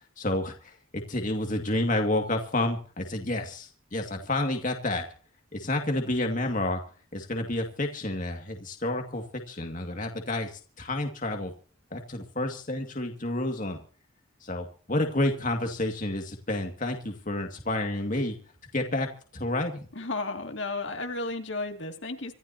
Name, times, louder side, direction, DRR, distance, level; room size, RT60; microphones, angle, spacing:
voice 1, 0.2-5.1 5.5-6.9 7.1-11.5 11.9-13.8 14.4-18.4 18.7-19.9, left 1 dB, 40° left, 3 dB, 2.2 m, -30 dB
voice 2, 19.9-22.3, left 3 dB, 55° left, 4 dB, 2.5 m, -33 dB
26.0 x 14.0 x 2.9 m, 0.41 s
head